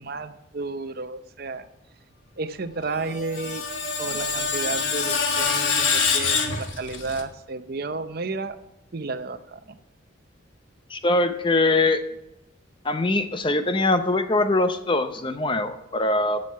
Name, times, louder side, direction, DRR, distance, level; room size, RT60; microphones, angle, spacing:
voice 1, 0.0-1.7 2.4-3.6 4.0-8.6 8.9-9.8, right 3 dB, 50° right, 11 dB, 0.6 m, -32 dB
Screech, 2.9-7.2, left 5 dB, 65° left, 1.3 m, -25 dB
voice 2, 10.9-12.0 12.8-16.4, left 2 dB, 25° left, 9 dB, 0.6 m, -22 dB
11.5 x 6.4 x 5.7 m, 0.89 s
head